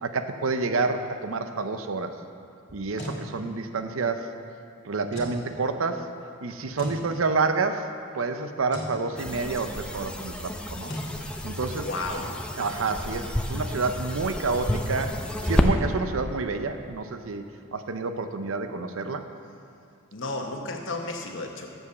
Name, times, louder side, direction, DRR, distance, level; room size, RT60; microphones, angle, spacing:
voice 1, 0.0-2.1 2.7-4.3 4.8-6.1 6.4-10.9 11.4-11.9 12.6-15.1 15.4-17.4 17.7-19.2, right 4 dB, 90° right, 8 dB, 0.7 m, -28 dB
sound 1, 2.7-3.2 5.1-5.4 6.8-7.0 8.7-9.0 10.9-11.1, equal, 35° left, 2.2 m, -35 dB
sound 2, 9.2-15.7, left 1 dB, 5° left, 0.5 m, -30 dB
voice 2, 11.7-12.4 20.1-21.7, left 2 dB, 65° left, 2 dB, 1.1 m, -33 dB
8.4 x 7.4 x 6.7 m, 2.5 s
head